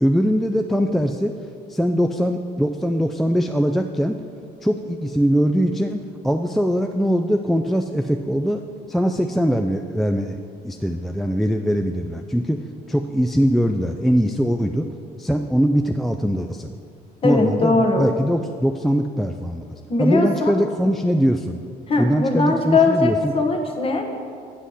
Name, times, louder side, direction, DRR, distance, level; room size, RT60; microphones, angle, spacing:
voice 1, 0.0-1.3 1.7-4.2 4.6-8.6 8.9-10.4 10.6-12.6 12.9-14.9 15.2-16.7 17.2-19.6 20.0-21.6 22.0-23.3, equal, ahead, 4 dB, 0.3 m, -21 dB
voice 2, 17.2-18.1 19.9-20.6 21.9-24.2, left 3 dB, 35° left, 3 dB, 1.2 m, -20 dB
8.3 x 5.6 x 6.3 m, 2.2 s
cardioid pair, 110°, 17 cm